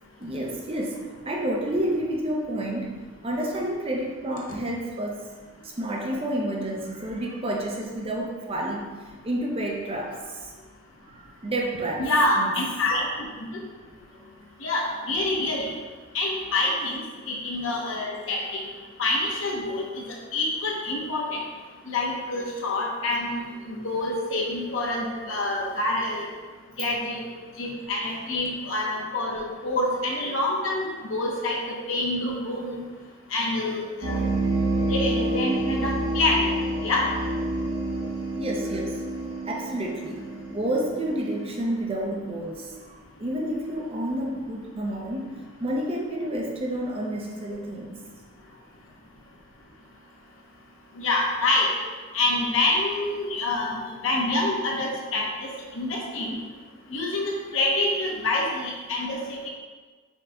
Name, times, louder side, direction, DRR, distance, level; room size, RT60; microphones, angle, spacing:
voice 1, 0.2-5.3 5.6-9.0 9.2-10.5 11.1-12.1 12.4-12.5 38.3-39.0 39.5-48.0, right 1 dB, 25° right, 0 dB, 0.5 m, -30 dB
voice 2, 12.0-13.1 14.6-15.7 16.1-17.0 17.3-18.6 19.0-20.0 20.3-21.2 21.9-26.3 26.8-27.2 27.6-31.6 31.9-32.8 33.3-34.2 34.9-36.5 36.8-37.1 51.0-51.7 52.1-55.2 55.7-56.4 56.9-59.5, left 2 dB, 65° left, -2 dB, 0.9 m, -26 dB
sound 1, 34.0-41.4, right 2 dB, 65° right, 0.8 m, -28 dB
5.3 x 3.9 x 2.3 m, 1.4 s
head